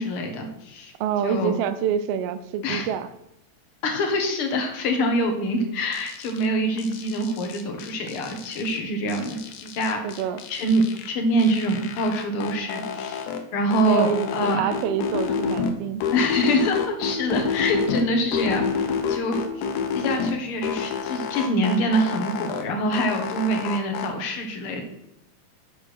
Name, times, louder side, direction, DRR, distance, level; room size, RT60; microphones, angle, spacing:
voice 1, 0.0-0.9 1.2-1.5 2.6-2.9 3.8-10.0 10.5-14.7 16.1-19.6 19.9-24.8, equal, 55° left, 4 dB, 1.9 m, -25 dB
voice 2, 1.0-3.1 10.0-10.4 13.8-16.0, right 8 dB, 85° right, 11 dB, 1.4 m, -26 dB
sound 1, 5.9-6.5 6.8-8.8 9.1-11.1 11.4-13.4 13.7-15.7 16.0-18.0 18.3-20.3 20.6-22.6 22.9-24.1, left 6 dB, 80° left, 2.4 m, -29 dB
6.9 x 6.7 x 6.0 m, 0.82 s
omnidirectional pair, 3.4 m